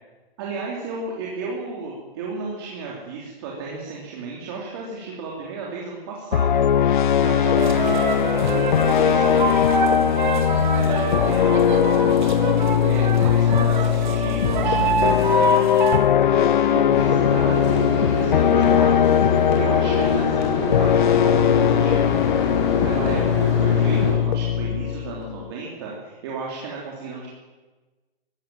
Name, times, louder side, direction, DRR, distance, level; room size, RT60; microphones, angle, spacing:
voice 1, 0.4-15.8 16.3-22.5 22.8-27.3, right 4 dB, 25° right, -3 dB, 3.2 m, -33 dB
sound 1, 6.3-25.5, left 9 dB, 55° left, 0.6 m, -20 dB
sound 2, 7.6-16.0, right 3 dB, 55° right, 3.7 m, -25 dB
sound 3, 16.9-24.1, left 3 dB, 30° left, 5.2 m, -25 dB
22.0 x 16.5 x 7.6 m, 1.2 s
hypercardioid pair, 175°, 29 cm